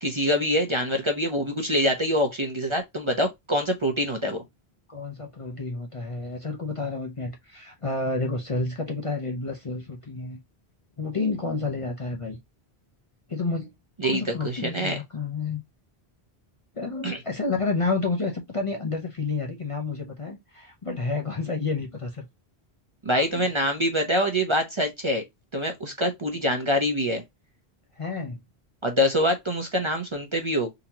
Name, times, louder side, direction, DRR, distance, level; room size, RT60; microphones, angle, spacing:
voice 1, 0.0-4.4 14.0-15.0 17.0-17.2 23.0-25.2 25.5-27.2 28.8-30.7, equal, 35° right, 0.6 m, -25 dB
voice 2, 4.9-10.4 11.0-12.4 13.3-13.7 14.0-15.6 16.7-22.2 23.3-23.5 28.0-28.4, left 3 dB, 35° left, 0.6 m, -30 dB
3.9 x 2.8 x 2.8 m
omnidirectional pair, 1.1 m